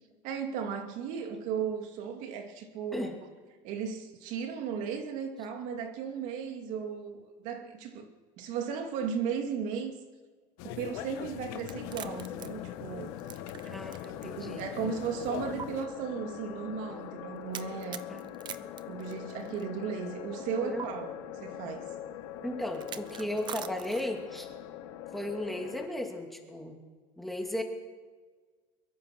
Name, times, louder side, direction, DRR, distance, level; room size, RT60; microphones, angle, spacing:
voice 1, 0.2-3.2 3.6-8.1 8.4-9.9 10.6-13.2 14.2-18.0 18.9-21.2 21.4-21.9, right 6 dB, 60° right, 2.6 m, -35 dB
sound 1, 10.6-15.9, left 12 dB, 65° left, 1.6 m, -42 dB
Cracking egg, 11.6-14.3 14.6-14.7 15.6-15.7 17.5-19.6 20.8-20.9 22.7-24.2, right 9 dB, 30° right, 0.9 m, -43 dB
sound 2, 11.7-25.9, left 11 dB, 90° left, 2.5 m, -43 dB
voice 2, 13.6-14.7 18.1-18.3 18.6-18.7 20.3-20.9 22.4-24.5 25.1-26.8 27.2-27.6, left 1 dB, ahead, 2.6 m, -36 dB
23.0 x 22.5 x 6.2 m
cardioid pair, 155°, 15 cm